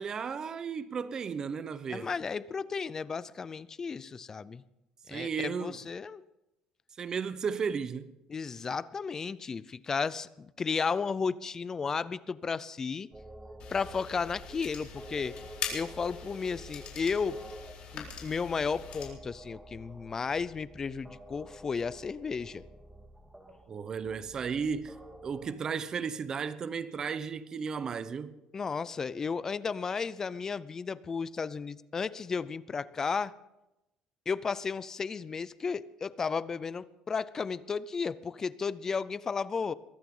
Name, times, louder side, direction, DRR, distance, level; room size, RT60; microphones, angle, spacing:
voice 1, 0.0-2.1 5.1-5.8 7.0-8.1 23.7-24.9 25.2-28.3, right 6 dB, 30° right, 0.9 m, -34 dB
voice 2, 1.9-4.6 5.1-6.2 8.3-13.1 13.7-15.4 15.7-17.4 17.9-22.6 28.5-33.3 34.3-39.7, left 5 dB, 25° left, 0.5 m, -33 dB
sound 1, 13.1-25.5, right 1 dB, 5° right, 1.9 m, -50 dB
sound 2, 13.6-19.1, left 7 dB, 55° left, 4.2 m, -43 dB
22.5 x 14.5 x 3.8 m
cardioid pair, 135°, 2 cm